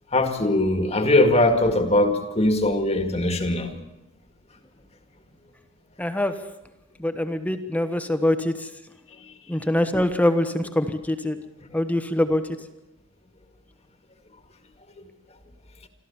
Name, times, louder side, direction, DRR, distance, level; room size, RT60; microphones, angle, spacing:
voice 1, 0.1-3.8, left 1 dB, 30° left, 2.0 m, -21 dB
voice 2, 6.0-6.4 7.0-8.7 9.5-11.4 11.7-12.4, left 1 dB, 5° left, 1.2 m, -24 dB
26.5 x 14.0 x 7.2 m
head